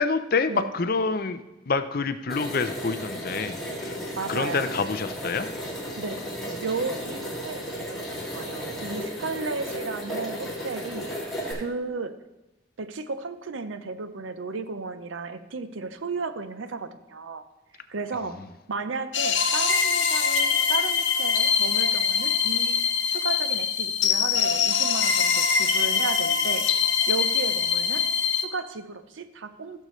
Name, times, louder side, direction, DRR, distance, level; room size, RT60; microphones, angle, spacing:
voice 1, 0.0-4.0 4.3-5.5, left 4 dB, 50° left, 11 dB, 0.5 m, -27 dB
sound 1, 2.3-11.5, equal, ahead, 2.4 m, -34 dB
voice 2, 4.2-4.7 6.0-6.3 6.6-11.1 11.5-12.2 12.8-17.4 17.9-18.4 18.7-22.8 23.1-28.1 28.3-29.8, right 4 dB, 85° right, 10 dB, 0.6 m, -34 dB
Amazing Sinebell (Ethereal), 19.1-28.4, left 7 dB, 70° left, 0.8 m, -23 dB
15.5 x 6.6 x 3.1 m, 0.98 s
head